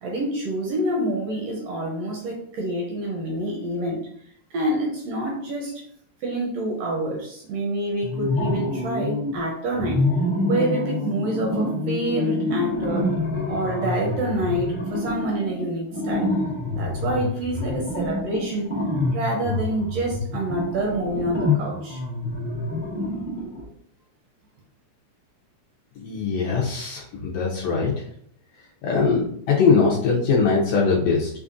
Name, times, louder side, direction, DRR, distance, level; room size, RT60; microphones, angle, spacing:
voice 1, 0.0-4.0 4.5-5.7 6.2-10.0 10.5-13.1 13.5-16.3 16.7-18.7 19.1-22.0, right 1 dB, 75° right, -1 dB, 1.6 m, -27 dB
sound 1, 8.0-9.4 9.7-23.6, left 2 dB, 55° left, 0.5 m, -27 dB
voice 2, 26.0-27.9 28.8-31.3, left 5 dB, 75° left, -4 dB, 1.5 m, -21 dB
5.3 x 2.4 x 2.5 m, 0.64 s
omnidirectional pair, 3.3 m